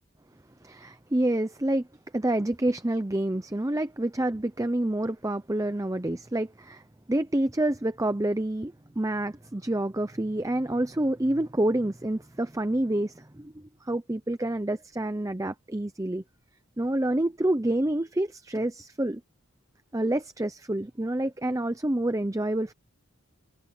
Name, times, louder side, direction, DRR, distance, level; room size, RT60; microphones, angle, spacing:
voice 1, 0.6-1.9 2.1-6.8 7.1-16.2 16.8-19.2 19.9-22.7, right 1 dB, 15° right, 0.6 m, -28 dB
head